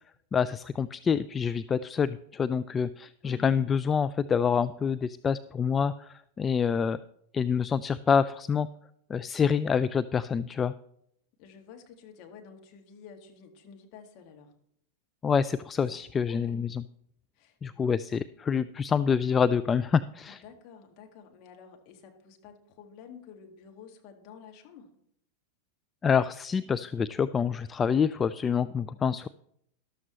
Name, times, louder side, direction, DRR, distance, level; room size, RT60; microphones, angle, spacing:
voice 1, 0.3-7.0 7.3-8.7 9.1-10.7 15.2-16.8 17.6-20.4 26.0-29.3, left 6 dB, 20° left, 13 dB, 0.3 m, -27 dB
voice 2, 3.2-3.6 11.4-14.5 15.8-16.7 17.4-17.9 20.3-24.9, left 6 dB, 40° left, 3 dB, 1.9 m, -50 dB
13.0 x 12.5 x 3.2 m, 0.71 s
figure-of-eight pair, 90°, 0 cm